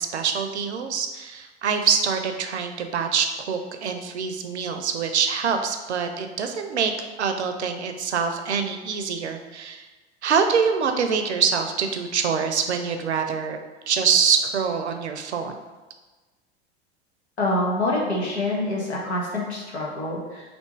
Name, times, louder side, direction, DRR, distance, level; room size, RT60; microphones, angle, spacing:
voice 1, 0.0-6.9 7.2-9.9 10.2-13.6 13.9-15.5, right 6 dB, 90° right, 6 dB, 0.5 m, -25 dB
voice 2, 17.4-20.4, left 1 dB, 90° left, -3 dB, 1.0 m, -26 dB
3.4 x 2.6 x 4.5 m, 1.2 s
hypercardioid pair, 85°, 33 cm